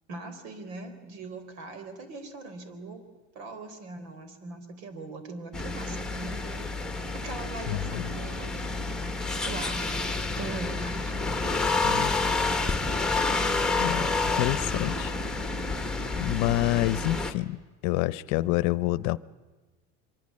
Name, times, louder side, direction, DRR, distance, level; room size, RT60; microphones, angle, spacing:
voice 1, 0.1-3.0 3.3-6.7 7.2-8.7 9.4-9.8 10.3-11.1 11.9-12.2 12.6-12.8, right 2 dB, 85° right, 9 dB, 4.2 m, -40 dB
sound 1, 5.5-17.3, left 3 dB, ahead, 1.3 m, -29 dB
voice 2, 7.7-8.1 11.9-12.1 13.8-14.1 14.3-15.1 16.2-19.2, left 17 dB, 60° left, 19 dB, 0.7 m, -27 dB
24.0 x 23.5 x 8.6 m, 1.2 s
supercardioid pair, 135°, 32 cm